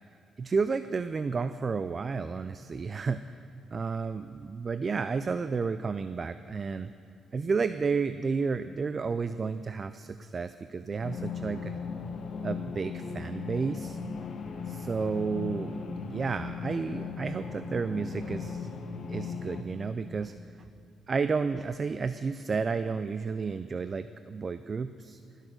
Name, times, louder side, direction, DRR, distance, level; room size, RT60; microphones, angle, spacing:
voice 1, 0.4-3.4 3.7-6.9 7.3-11.8 12.4-14.0 14.7-15.8 16.0-18.7 19.1-20.3 21.1-25.2, right 5 dB, 40° right, 12 dB, 0.3 m, -31 dB
sound 1, 11.0-19.6, left 5 dB, 55° left, 0.9 m, -37 dB
19.0 x 6.5 x 6.3 m, 2.7 s
cardioid pair, 90°, 0 cm